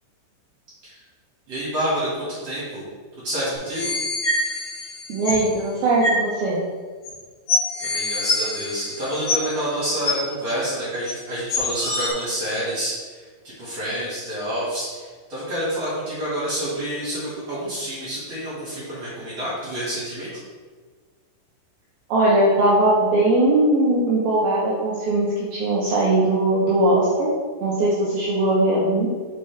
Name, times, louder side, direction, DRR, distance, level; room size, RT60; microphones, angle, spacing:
voice 1, 1.5-2.8 3.2-3.9 7.8-13.2 13.4-20.3, equal, 50° right, -9 dB, 2.1 m, -28 dB
sound 1, 3.6-5.5 6.0-6.2 7.0-7.1 7.5-9.6 10.0-10.1 11.0-11.1 11.5-12.1, left 2 dB, 55° left, 2.1 m, -25 dB
voice 2, 5.1-6.6 22.1-27.3 27.6-29.1, right 1 dB, 85° right, -6 dB, 2.1 m, -20 dB
7.2 x 5.4 x 3.4 m, 1.5 s
omnidirectional pair, 5.8 m